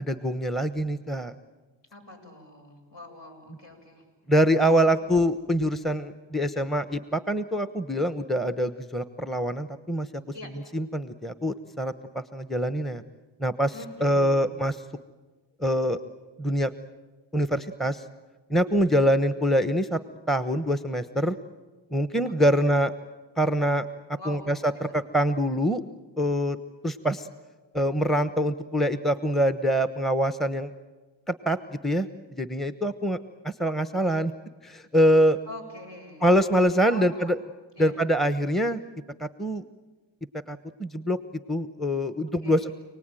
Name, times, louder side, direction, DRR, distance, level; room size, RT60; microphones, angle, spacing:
voice 1, 0.0-1.3 4.3-10.1 10.7-13.0 13.4-13.7 14.0-14.7 15.6-16.0 16.4-16.7 17.3-18.0 18.5-20.0 20.3-21.4 21.9-22.9 23.4-23.9 24.3-25.8 26.2-26.6 26.8-27.3 27.7-30.7 31.3-31.6 31.8-32.1 32.4-33.2 33.4-34.3 34.6-35.4 36.2-37.4 37.8-38.8 39.2-39.6 40.5-41.2 41.5-42.7, equal, ahead, 11 dB, 1.0 m, -24 dB
voice 2, 1.9-4.1 10.3-10.5 13.7-14.5 22.2-22.6 24.1-24.9 35.5-36.3 36.9-37.3 37.7-38.0 42.4-42.7, left 1 dB, 60° left, 1 dB, 7.7 m, -44 dB
28.5 x 19.0 x 9.1 m, 1.3 s
cardioid pair, 60°, 48 cm